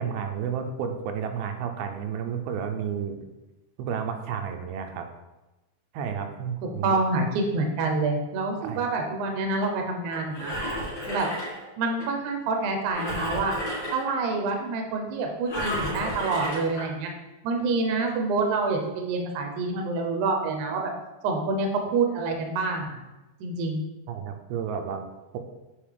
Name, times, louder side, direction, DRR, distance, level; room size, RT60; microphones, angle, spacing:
voice 1, 0.0-3.2 3.8-5.1 5.9-7.0 8.6-8.8 24.1-25.1, right 7 dB, 85° right, 5 dB, 2.5 m, -31 dB
voice 2, 6.8-10.5 11.1-11.3 11.8-13.6 13.9-17.1 17.4-20.9 21.2-23.0 23.4-23.8, right 3 dB, 70° right, 3 dB, 2.0 m, -27 dB
Engine, 10.1-12.1 12.9-14.2 15.5-16.9 17.5-17.6, equal, 40° left, 1.9 m, -32 dB
8.5 x 4.8 x 3.4 m, 1.1 s
omnidirectional pair, 4.3 m